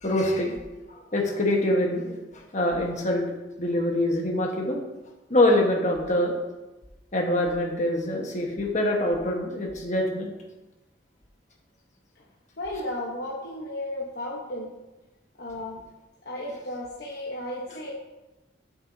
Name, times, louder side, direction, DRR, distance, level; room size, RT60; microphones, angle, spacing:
voice 1, 0.0-0.6 1.1-3.3 3.6-4.8 5.3-6.3 7.1-10.3, left 1 dB, 40° left, 0 dB, 1.3 m, -24 dB
voice 2, 12.6-14.7 15.4-15.8 16.2-17.9, left 1 dB, 65° left, -3 dB, 1.1 m, -34 dB
8.9 x 7.0 x 2.8 m, 1.1 s
head